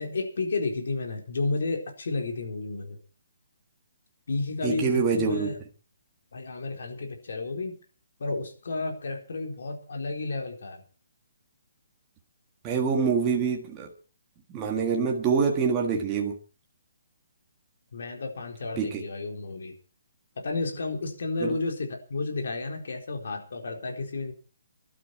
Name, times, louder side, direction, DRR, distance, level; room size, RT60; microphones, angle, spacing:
voice 1, 0.0-3.0 4.3-5.6 6.3-7.7 8.2-10.8 17.9-19.7 20.4-24.3, left 3 dB, 60° left, 3 dB, 4.1 m, -32 dB
voice 2, 4.6-5.5 12.6-13.9 14.5-16.4 18.8-19.0 21.4-21.5, right 5 dB, 15° right, 0 dB, 1.6 m, -25 dB
20.0 x 12.0 x 4.8 m, 0.37 s
hypercardioid pair, 175°, 0 cm